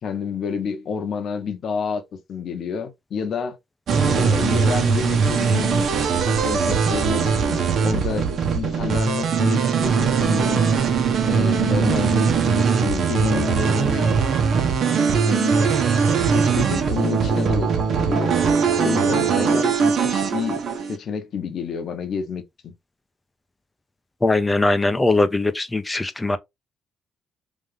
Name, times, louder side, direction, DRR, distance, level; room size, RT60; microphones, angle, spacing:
voice 1, 0.0-3.6 4.0-10.7 11.2-14.1 15.2-15.7 16.3-18.3 18.8-20.6 20.9-22.7, left 6 dB, 60° left, 1.3 m, -29 dB
sound 1, 3.9-21.0, right 6 dB, 65° right, 1.2 m, -20 dB
voice 2, 24.2-26.4, left 2 dB, 15° left, 0.8 m, -20 dB
3.7 x 3.1 x 3.6 m
cardioid pair, 90°, 0 cm